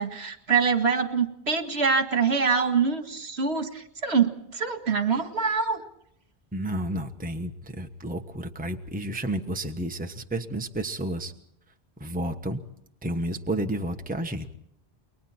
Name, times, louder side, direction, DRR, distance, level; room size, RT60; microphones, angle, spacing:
voice 1, 0.0-5.8, right 5 dB, 70° right, 7 dB, 2.2 m, -25 dB
voice 2, 6.5-11.3 12.0-12.6 13.0-14.7, right 1 dB, 10° right, 5 dB, 1.2 m, -31 dB
29.5 x 22.5 x 4.4 m, 0.75 s
omnidirectional pair, 1.1 m